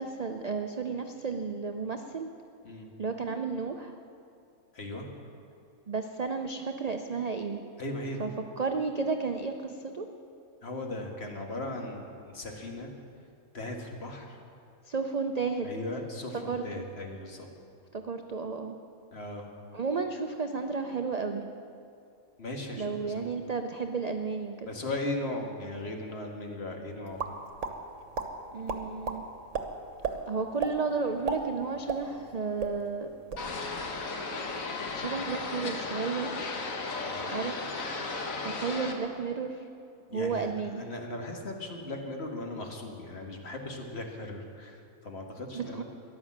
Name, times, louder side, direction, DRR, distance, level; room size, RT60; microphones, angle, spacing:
voice 1, 0.0-2.3 3.0-3.9 5.9-7.6 8.2-8.3 8.6-10.1 14.8-15.7 16.5-16.8 17.9-18.8 19.7-21.5 22.7-24.7 28.5-29.2 30.3-33.1 35.0-36.3 37.3-37.9 38.4-39.7 40.1-40.8 45.5-45.8, right 4 dB, 45° right, 5 dB, 0.5 m, -32 dB
voice 2, 4.7-5.1 7.8-8.3 10.6-12.9 13.5-14.4 15.6-17.5 19.1-19.5 22.4-23.3 24.7-27.2 37.1-37.4 40.1-40.5 40.8-45.8, left 2 dB, 50° left, 2 dB, 1.8 m, -38 dB
sound 1, 27.2-27.7 28.1-28.3 28.7-29.2 29.5-29.6 30.0-30.2 30.6-30.8 31.1-32.3 32.6-32.7 33.1-33.5, right 5 dB, 65° right, 1.3 m, -32 dB
sound 2, 33.4-38.9, left 3 dB, 75° left, 1.6 m, -35 dB
14.0 x 11.0 x 7.3 m, 2.5 s
omnidirectional pair, 1.4 m